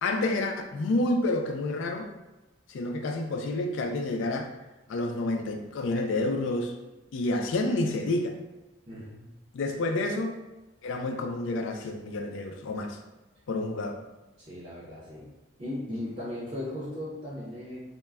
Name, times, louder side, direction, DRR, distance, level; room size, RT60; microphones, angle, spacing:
voice 1, 0.0-2.1 2.7-4.5 4.9-6.7 7.1-8.4 9.5-10.4 10.8-13.0 13.5-14.0, left 2 dB, 80° left, 4 dB, 0.3 m, -29 dB
voice 2, 8.9-9.2 14.4-15.3 15.6-17.9, left 1 dB, 30° right, -8 dB, 0.6 m, -37 dB
2.1 x 2.1 x 3.4 m, 1.0 s
head